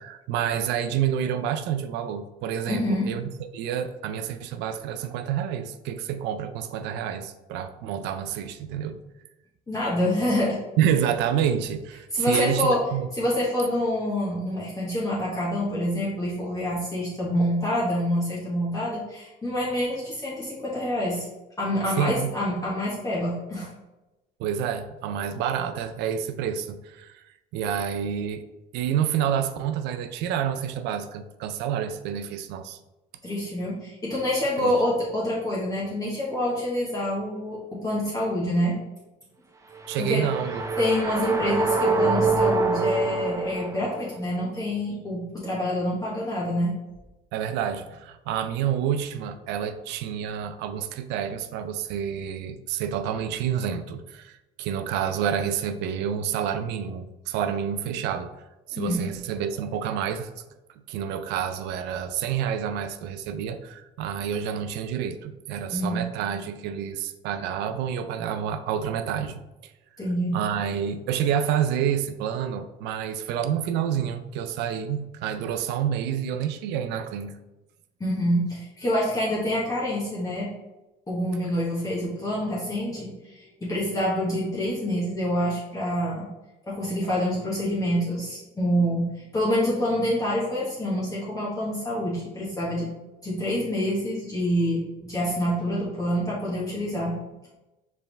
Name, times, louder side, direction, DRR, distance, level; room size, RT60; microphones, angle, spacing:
voice 1, 0.0-9.0 10.8-13.1 22.0-22.3 24.4-27.2 27.5-28.4 28.7-32.8 34.6-34.7 39.9-40.6 41.4-41.6 47.3-58.3 58.7-60.3 60.9-69.7 70.3-77.3, right 9 dB, 90° right, 9 dB, 0.4 m, -28 dB
voice 2, 2.7-3.1 9.7-10.6 12.1-12.8 13.1-21.3 21.6-23.7 33.2-38.8 40.0-40.3 40.8-46.7 58.7-59.0 65.7-66.0 70.0-70.4 78.0-80.5 81.1-86.3 86.7-92.9 93.2-97.2, equal, 20° left, -7 dB, 1.2 m, -26 dB
sound 1, 39.8-44.1, right 3 dB, 20° right, 0.5 m, -25 dB
4.5 x 3.5 x 3.3 m, 1.0 s
cardioid pair, 110°, 17 cm